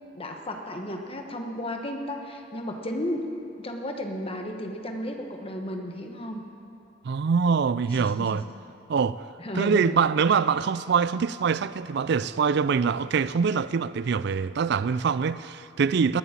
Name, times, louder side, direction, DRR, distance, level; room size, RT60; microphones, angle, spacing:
voice 1, 0.1-3.3 3.6-6.4 8.0-8.4 9.4-10.0, left 1 dB, 30° left, 1.3 m, -33 dB
voice 2, 7.0-8.4 8.9-9.2 9.6-16.2, right 6 dB, 60° right, 0.4 m, -24 dB
19.5 x 7.0 x 8.8 m
head